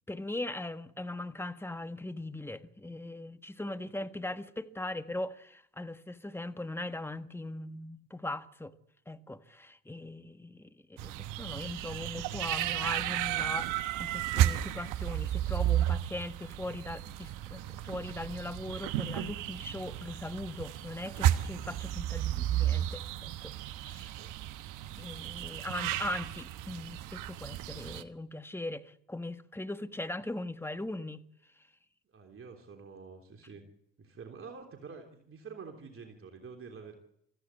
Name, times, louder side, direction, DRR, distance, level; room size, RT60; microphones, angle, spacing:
voice 1, 0.1-8.7 9.1-23.5 23.8-24.1 25.0-31.2, left 2 dB, 5° left, 1.4 m, -40 dB
sound 1, 11.0-28.0, right 12 dB, 75° right, 1.2 m, -33 dB
voice 2, 24.0-24.3 32.1-33.6 34.0-37.0, right 5 dB, 40° right, 3.3 m, -48 dB
24.0 x 15.0 x 8.4 m
hypercardioid pair, 65°, 32 cm